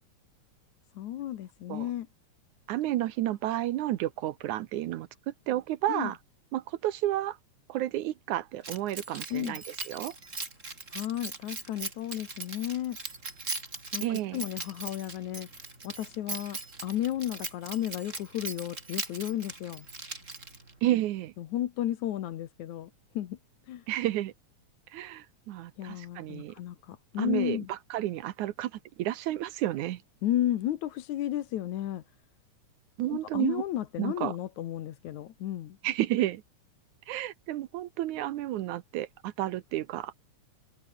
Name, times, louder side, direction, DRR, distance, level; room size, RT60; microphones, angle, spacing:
voice 1, 0.9-2.1 5.9-6.1 9.3-9.6 10.9-13.0 13.9-19.9 21.4-23.4 23.7-23.9 25.8-27.7 30.2-32.0 33.1-35.8, left 12 dB, 75° left, 2.6 m, -33 dB
voice 2, 2.7-6.2 6.5-7.4 7.7-10.1 14.0-14.4 20.8-21.3 23.9-24.3 24.9-26.6 27.2-28.7 29.0-30.0 33.0-33.6 34.0-34.3 35.8-36.4 37.1-40.1, right 14 dB, 80° right, 2.3 m, -31 dB
Keys jangling, 8.6-20.8, right 3 dB, 25° right, 3.9 m, -40 dB
omnidirectional pair, 3.5 m